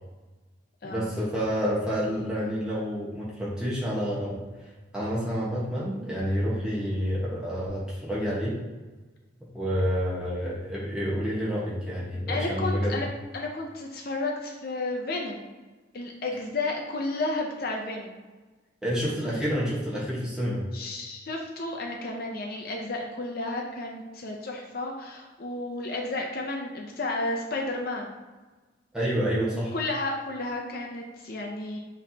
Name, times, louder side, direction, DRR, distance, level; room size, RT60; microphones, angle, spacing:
voice 1, 0.8-4.4 4.9-8.6 9.5-12.9 18.8-20.6 28.9-29.7, equal, 5° right, -8 dB, 1.2 m, -28 dB
voice 2, 12.3-13.1 13.3-15.4 15.9-18.1 20.7-28.1 29.7-31.8, left 2 dB, 50° left, 0 dB, 0.5 m, -32 dB
6.1 x 3.0 x 2.8 m, 1.3 s
head